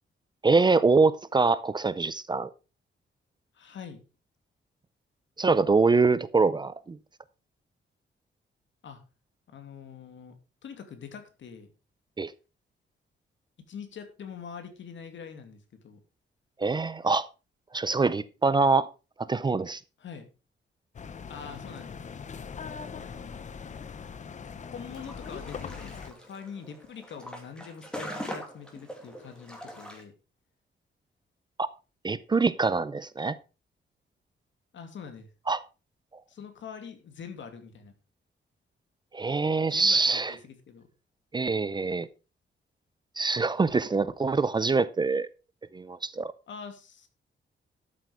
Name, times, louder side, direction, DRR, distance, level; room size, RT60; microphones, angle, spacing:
voice 1, 0.4-2.5 5.4-7.0 12.2-12.3 16.6-17.3 17.7-18.9 19.3-19.8 31.6-31.7 32.0-33.4 35.5-35.6 39.1-40.3 41.3-42.1 43.2-45.3 45.7-46.3, right 4 dB, 20° right, 0.5 m, -24 dB
voice 2, 3.5-4.0 8.8-9.0 9.5-10.3 10.6-11.7 13.7-16.0 20.0-20.3 21.3-22.0 22.9-23.5 24.6-30.1 34.7-35.3 36.3-37.9 39.7-40.9 46.5-47.1, left 6 dB, 70° left, 2.7 m, -44 dB
sound 1, 20.9-26.1, left 6 dB, 40° left, 0.8 m, -41 dB
sound 2, 24.9-30.0, equal, 5° left, 2.6 m, -42 dB
13.0 x 7.9 x 4.8 m
wide cardioid pair, 180°, 20 cm